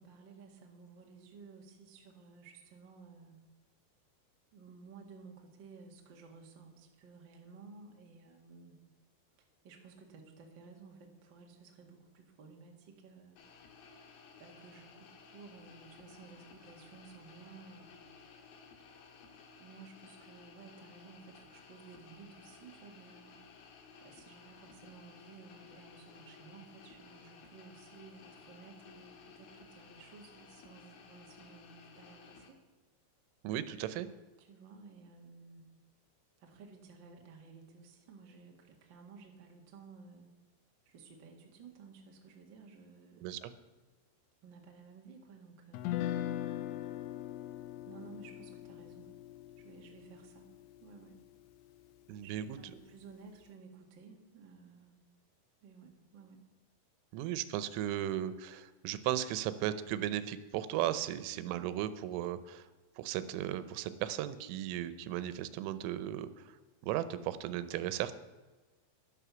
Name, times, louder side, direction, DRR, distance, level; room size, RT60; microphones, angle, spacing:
voice 1, 0.0-3.4 4.5-8.8 9.6-13.4 14.4-18.1 19.6-23.4 24.0-32.6 34.4-35.7 36.4-40.3 40.8-43.3 44.4-46.3 47.8-49.1 49.6-50.5 50.8-51.2 52.2-55.0 55.6-56.4, right 4 dB, 75° right, 1 dB, 1.0 m, -55 dB
sound 1, 13.4-32.5, left 5 dB, 60° left, 2.9 m, -56 dB
voice 2, 33.4-34.1 43.2-43.5 52.1-52.6 57.1-62.7 63.0-66.5 66.8-68.1, right 12 dB, 90° right, 13 dB, 3.4 m, -36 dB
Guitar, 45.7-51.9, left 12 dB, 80° left, 2.8 m, -41 dB
11.5 x 11.0 x 6.9 m, 1.2 s
omnidirectional pair, 5.6 m